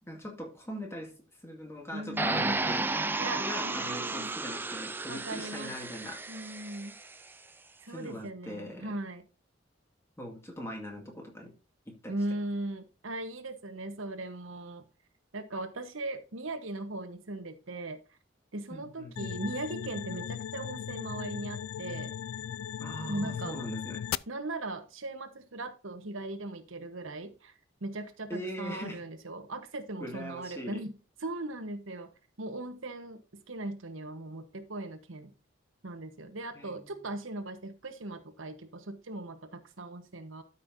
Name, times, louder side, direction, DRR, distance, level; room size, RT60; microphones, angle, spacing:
voice 1, 0.0-1.1 1.4-3.1 3.4-6.2 7.9-8.9 10.2-11.5 11.9-12.1 18.7-19.1 22.8-24.1 28.3-29.0 30.0-30.8 36.5-36.9, equal, 15° left, 1 dB, 2.0 m, -41 dB
voice 2, 1.9-2.6 3.2-4.4 5.1-5.7 6.3-6.9 7.8-9.2 12.1-14.8 15.3-18.0 18.5-22.1 23.1-23.6 24.3-27.5 27.8-30.9 31.2-32.1 32.4-33.2 33.5-35.3 35.8-40.4, right 2 dB, 80° right, 8 dB, 1.2 m, -38 dB
sound 1, 2.2-7.2, right 2 dB, 10° right, 0.4 m, -33 dB
sound 2, 19.2-24.2, left 9 dB, 90° left, 0.3 m, -37 dB
12.5 x 5.5 x 2.7 m, 0.34 s
head